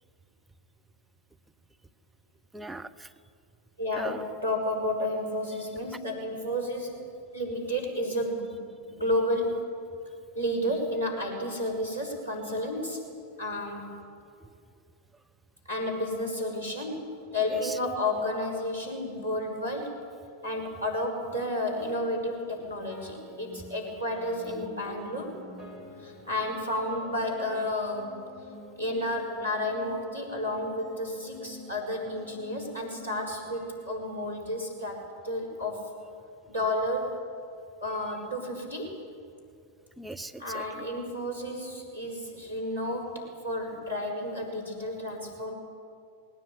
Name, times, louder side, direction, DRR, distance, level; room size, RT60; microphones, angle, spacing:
voice 1, 2.5-3.1 3.9-4.2 17.5-17.8 40.0-40.9, right 2 dB, 5° right, 7 dB, 0.8 m, -39 dB
voice 2, 3.8-7.0 7.3-8.6 8.9-9.6 10.4-13.0 13.4-13.9 15.7-17.0 17.3-20.0 20.4-25.3 26.0-28.2 28.8-35.9 36.5-37.1 37.8-39.0 40.4-45.5, left 1 dB, 85° right, 0 dB, 5.7 m, -31 dB
sound 1, 22.6-34.9, left 2 dB, 15° left, 3.3 m, -48 dB
20.0 x 17.5 x 9.3 m, 2.4 s
figure-of-eight pair, 90°, 0 cm